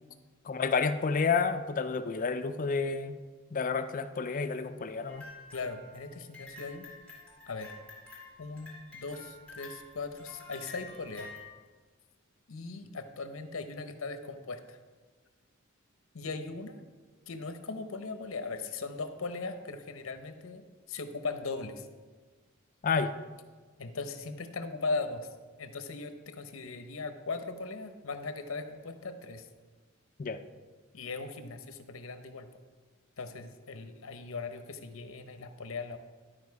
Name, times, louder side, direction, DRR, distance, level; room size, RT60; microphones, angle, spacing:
voice 1, 0.5-3.2 3.5-5.2 22.8-23.1 30.2-30.4, left 5 dB, 40° left, 10 dB, 0.4 m, -30 dB
sound 1, 5.1-11.5, left 3 dB, 5° left, 2.0 m, -49 dB
voice 2, 5.5-6.8 7.5-7.7 8.4-11.3 12.5-14.8 16.1-16.8 17.3-21.9 23.8-25.3 25.6-29.5 30.9-32.5 33.2-36.0, left 3 dB, 75° left, 8 dB, 0.8 m, -39 dB
12.0 x 5.0 x 4.6 m, 1.4 s
head